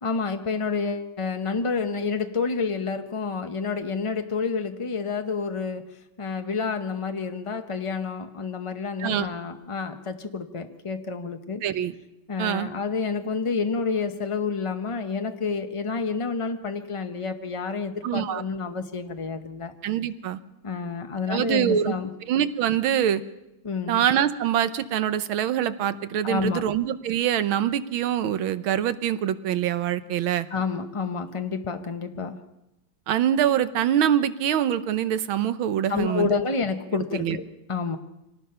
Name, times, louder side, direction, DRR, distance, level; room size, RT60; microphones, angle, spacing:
voice 1, 0.0-11.6 12.3-19.7 20.6-22.1 23.6-24.0 26.2-26.7 30.5-32.4 35.9-38.0, left 5 dB, 50° left, 7 dB, 0.3 m, -29 dB
voice 2, 11.6-11.9 12.4-12.7 18.0-18.4 19.8-20.4 21.3-21.9 22.3-23.2 23.9-30.5 33.1-36.3 36.9-37.4, right 10 dB, 90° right, 13 dB, 1.7 m, -24 dB
25.5 x 18.5 x 5.7 m, 0.93 s
omnidirectional pair, 2.2 m